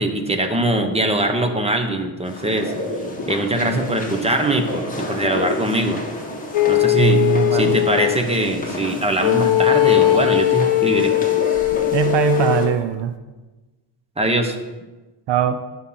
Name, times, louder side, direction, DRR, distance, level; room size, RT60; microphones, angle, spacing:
voice 1, 0.0-2.7 3.3-6.0 6.7-7.2 7.5-11.1 14.2-14.6, right 1 dB, 10° right, 5 dB, 1.0 m, -22 dB
sound 1, 2.2-12.7, left 1 dB, 15° left, 1.9 m, -32 dB
sound 2, 2.6-6.1 7.3-8.0 8.6-8.7 9.3-9.6 10.2-10.5 10.9-12.5, left 2 dB, 40° left, 2.6 m, -30 dB
sound 3, 6.5-8.2 9.2-12.8, left 16 dB, 90° left, 0.9 m, -19 dB
voice 2, 7.0-7.7 11.9-13.1 15.3-15.6, right 10 dB, 60° right, 9 dB, 0.7 m, -20 dB
11.0 x 5.7 x 5.7 m, 1.2 s
cardioid pair, 120°, 50 cm